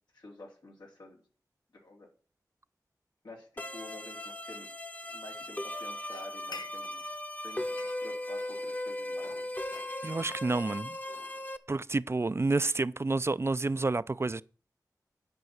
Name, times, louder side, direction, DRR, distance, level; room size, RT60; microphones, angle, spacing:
voice 1, 0.1-1.2 1.7-2.1 3.2-4.7 5.1-7.0 7.4-7.7 8.0-9.5, left 1 dB, 90° left, 3.7 m, -49 dB
sound 1, 3.6-11.6, left 1 dB, 25° left, 1.0 m, -38 dB
sound 2, 6.1-7.2 7.5-8.8 9.2-11.9, left 4 dB, 70° left, 0.4 m, -50 dB
voice 2, 10.0-11.0 11.7-14.4, right 3 dB, 35° right, 0.4 m, -29 dB
10.5 x 5.4 x 8.0 m
wide cardioid pair, 50°, 7 cm